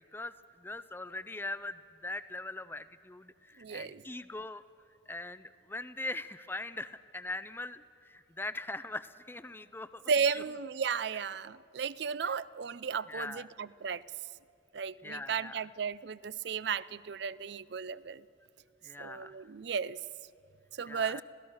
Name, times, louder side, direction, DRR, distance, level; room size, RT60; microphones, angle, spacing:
voice 1, 0.1-4.6 5.1-10.4 11.1-11.3 12.2-12.3 13.1-13.5 15.0-15.6 18.8-19.4 20.9-21.2, left 2 dB, 10° left, 14 dB, 0.5 m, -41 dB
voice 2, 3.6-4.0 10.1-14.0 14.7-18.2 19.0-20.0 20.7-21.2, right 6 dB, 60° right, 19 dB, 0.4 m, -34 dB
26.5 x 17.0 x 6.4 m, 2.6 s
head